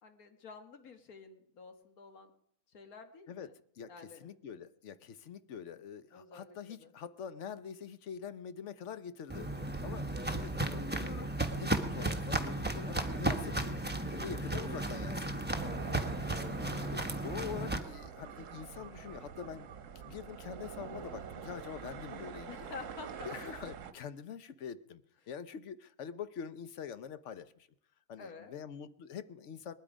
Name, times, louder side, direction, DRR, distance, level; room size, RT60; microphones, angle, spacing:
voice 1, 0.0-2.3 2.7-3.6 3.9-4.3 6.1-6.9 16.7-17.2 22.4-23.4 28.2-28.5, left 4 dB, 80° left, 7 dB, 1.8 m, -50 dB
voice 2, 3.8-13.8 14.1-15.6 16.8-19.7 20.0-22.7 23.2-25.0 25.3-27.7 28.1-29.7, left 7 dB, 60° left, 13 dB, 1.0 m, -45 dB
Walk footsteps, 9.3-17.8, right 1 dB, 10° right, 1.1 m, -34 dB
sound 1, 15.6-23.9, right 7 dB, 65° right, 1.2 m, -46 dB
20.0 x 12.5 x 5.1 m, 0.73 s
omnidirectional pair, 1.5 m